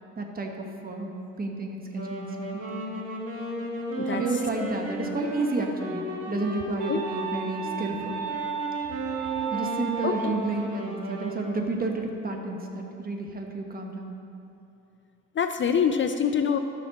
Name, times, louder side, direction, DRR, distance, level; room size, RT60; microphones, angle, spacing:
voice 1, 0.2-1.1 1.4-2.8 4.1-8.2 9.5-14.1, right 2 dB, 30° right, 2 dB, 1.2 m, -31 dB
Wind instrument woodwind instrument, 1.9-11.5, right 1 dB, 50° right, 1.9 m, -34 dB
sound 1, 6.8-10.4, right 8 dB, 90° right, 1.1 m, -34 dB
voice 2, 10.0-10.3 15.4-16.6, left 7 dB, 40° left, 7 dB, 0.5 m, -25 dB
13.0 x 6.0 x 4.1 m, 2.9 s
cardioid pair, 90°, 30 cm